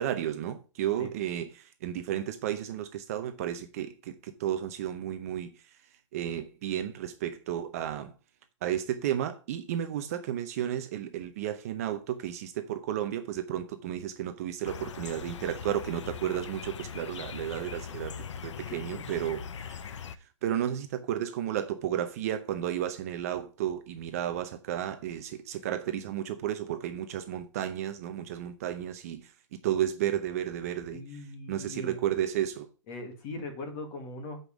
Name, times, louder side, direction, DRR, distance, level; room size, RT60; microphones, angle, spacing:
voice 1, 0.0-5.5 6.1-8.1 8.6-20.1 20.4-32.7, right 11 dB, 30° right, 0.6 m, -33 dB
sound 1, 14.6-20.2, left 7 dB, 65° left, 0.7 m, -41 dB
voice 2, 18.7-19.1 30.9-32.0 32.9-34.4, left 2 dB, 25° left, 1.7 m, -40 dB
8.1 x 5.3 x 4.9 m
hypercardioid pair, 165°, 16 cm